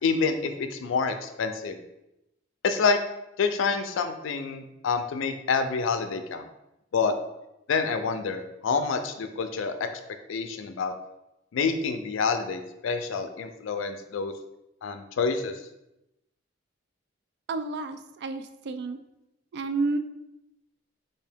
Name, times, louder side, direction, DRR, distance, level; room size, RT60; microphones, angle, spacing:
voice 1, 0.0-1.8 2.6-3.0 3.4-6.5 6.9-7.1 7.7-9.9 10.3-10.9 11.5-14.3 14.8-15.6, left 5 dB, 75° left, 8 dB, 0.4 m, -27 dB
voice 2, 17.5-19.0 19.5-20.0, right 3 dB, 60° right, 9 dB, 0.3 m, -30 dB
3.6 x 2.7 x 3.4 m, 0.89 s
head